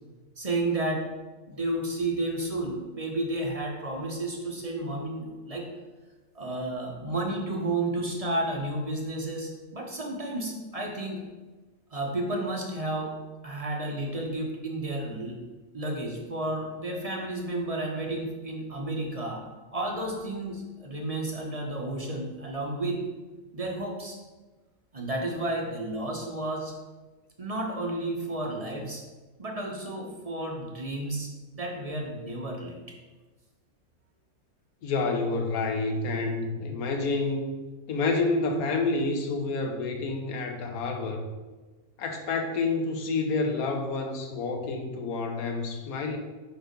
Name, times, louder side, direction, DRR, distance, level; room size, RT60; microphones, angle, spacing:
voice 1, 0.4-1.0 1.5-5.7 6.3-11.2 11.9-13.1 13.4-15.4 15.7-19.4 19.7-23.0 23.5-24.2 24.9-26.8 27.4-29.0 29.4-32.9, right 2 dB, 30° right, 0 dB, 0.9 m, -32 dB
voice 2, 34.8-37.6 37.9-41.2 42.0-46.2, left 3 dB, 70° left, 5 dB, 1.3 m, -28 dB
5.5 x 4.6 x 5.3 m, 1.2 s
omnidirectional pair, 1.6 m